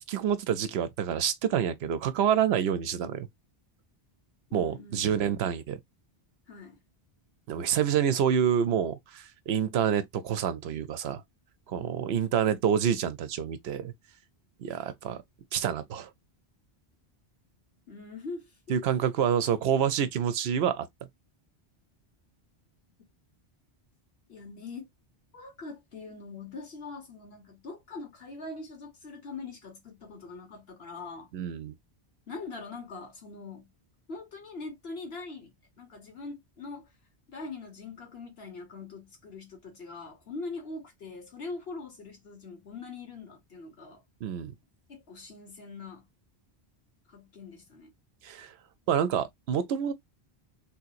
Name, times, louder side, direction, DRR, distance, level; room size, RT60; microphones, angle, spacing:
voice 1, 0.1-3.3 4.5-5.8 7.5-11.2 11.7-13.9 14.6-15.2 15.5-16.1 18.7-20.9 31.3-31.7 44.2-44.5 48.2-48.5 48.9-49.9, right 8 dB, 75° right, 0.8 m, -27 dB
voice 2, 4.5-5.3 6.5-6.8 17.9-18.9 24.3-24.9 25.3-31.3 32.3-33.7 34.1-36.9 37.3-44.0 44.9-46.1 47.1-47.9, left 3 dB, 70° left, 1.5 m, -42 dB
3.6 x 2.9 x 2.4 m
omnidirectional pair, 1.1 m